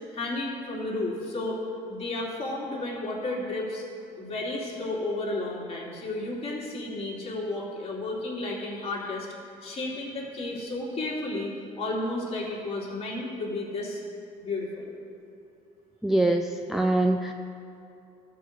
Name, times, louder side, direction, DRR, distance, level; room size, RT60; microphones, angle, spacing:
voice 1, 0.1-1.6 1.9-3.8 4.2-9.3 9.6-14.0 14.4-14.9, left 2 dB, 35° left, -4 dB, 2.6 m, -32 dB
voice 2, 16.0-17.3, right 1 dB, ahead, 4 dB, 0.3 m, -24 dB
13.5 x 4.8 x 6.5 m, 2.7 s
cardioid pair, 110°, 17 cm